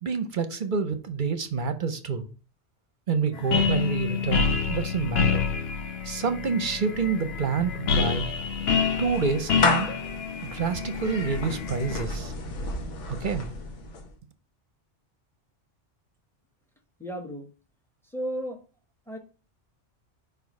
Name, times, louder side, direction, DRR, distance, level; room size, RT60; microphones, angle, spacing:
voice 1, 0.0-2.3 3.1-5.5 6.0-8.3 9.0-10.1 10.4-12.3 13.1-13.5, right 5 dB, 50° right, 0.7 m, -28 dB
sound 1, 3.3-12.0, left 6 dB, 60° left, 1.0 m, -28 dB
Clapping / Meow, 7.7-14.2, left 3 dB, 75° left, 1.3 m, -33 dB
voice 2, 17.0-17.5 18.1-18.6 19.1-19.2, equal, ahead, 0.8 m, -33 dB
4.8 x 4.7 x 5.2 m
omnidirectional pair, 1.2 m